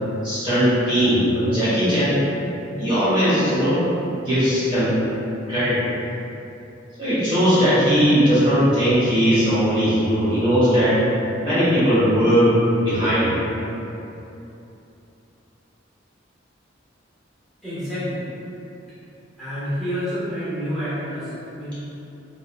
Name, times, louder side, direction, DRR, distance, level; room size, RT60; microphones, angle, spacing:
voice 1, 0.2-2.2 2.8-3.8 4.2-4.9 5.5-5.8 7.0-10.9 11.4-12.5 12.8-13.4, equal, 25° right, -13 dB, 1.2 m, -19 dB
voice 2, 17.6-18.3 19.4-21.8, equal, ahead, -15 dB, 1.3 m, -28 dB
3.7 x 3.6 x 2.3 m, 2.9 s
head